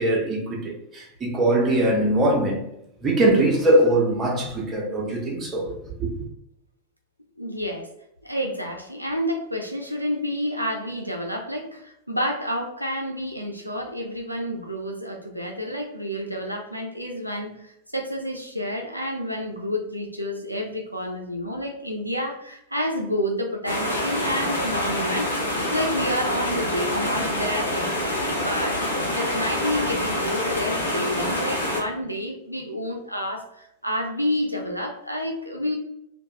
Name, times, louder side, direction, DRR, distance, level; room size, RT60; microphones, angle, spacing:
voice 1, 0.0-2.7 3.0-5.7 6.0-6.2, right 1 dB, 20° right, 0.6 m, -22 dB
voice 2, 7.4-7.9 8.2-27.9 28.3-28.8 29.1-35.8, equal, 90° right, 0.3 m, -29 dB
sound 1, 23.7-31.8, left 1 dB, 80° left, 0.6 m, -26 dB
2.3 x 2.1 x 2.8 m
figure-of-eight pair, 90°, 0 cm